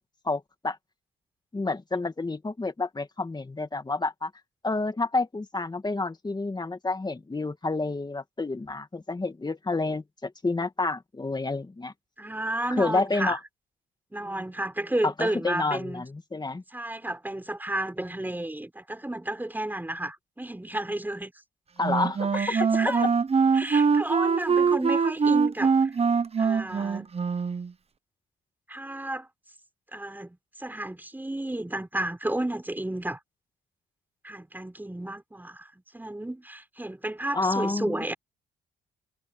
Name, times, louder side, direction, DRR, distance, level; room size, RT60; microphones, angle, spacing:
voice 1, 0.2-0.8 1.5-4.3 4.6-11.9 12.8-13.4 15.0-16.6 21.8-22.5 22.9-23.0 37.3-38.0, left 3 dB, 20° left, 2.3 m, -29 dB
voice 2, 12.2-13.4 14.1-16.0 16.7-21.3 22.3-23.1 23.5-25.9 26.4-27.1 28.7-29.3 29.9-33.2 34.2-35.7 35.9-38.1, right 1 dB, 10° right, 5.1 m, -32 dB
Wind instrument woodwind instrument, 21.8-27.7, right 5 dB, 30° right, 1.0 m, -23 dB
cardioid pair, 90°, 20 cm